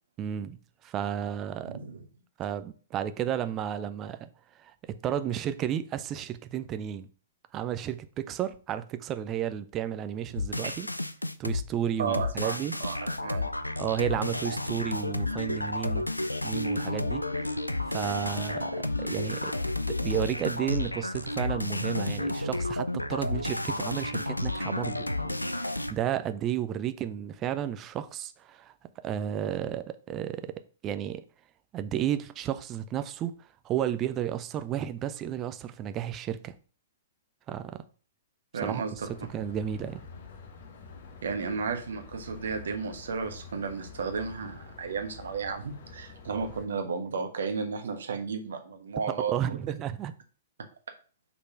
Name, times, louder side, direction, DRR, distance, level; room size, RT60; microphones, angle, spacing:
voice 1, 0.2-0.6 0.8-1.7 2.4-4.3 4.6-7.1 7.5-10.9 11.4-12.8 13.8-16.0 16.4-17.6 17.9-19.5 20.0-28.7 29.0-30.5 30.8-31.2 31.7-33.3 33.6-36.5 37.5-37.8 38.6-40.0 46.5-46.6 49.3-50.1, right 10 dB, 25° right, 0.6 m, -32 dB
voice 2, 1.6-2.0 10.6-10.7 12.0-13.5 38.5-39.1 41.2-49.6, right 5 dB, 60° right, 1.2 m, -33 dB
sound 1, 10.4-11.6 12.1-25.9, left 2 dB, 85° left, 0.5 m, -31 dB
sound 2, 38.9-46.7, left 5 dB, 50° left, 1.2 m, -47 dB
5.4 x 4.1 x 5.8 m
figure-of-eight pair, 110°, 0 cm